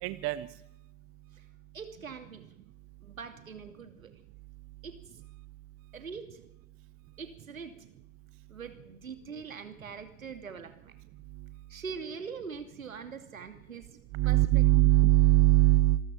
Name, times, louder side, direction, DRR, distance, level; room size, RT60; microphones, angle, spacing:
voice 1, 0.0-0.5 14.1-16.0, right 17 dB, 35° right, 15 dB, 0.9 m, -21 dB
voice 2, 1.7-2.5 3.0-4.1 4.8-5.0 5.9-6.4 7.2-7.7 8.5-10.9 11.7-13.9 14.2-14.6, right 5 dB, 85° right, 8 dB, 2.7 m, -42 dB
26.0 x 13.0 x 7.5 m, 0.82 s
figure-of-eight pair, 95°, 40 cm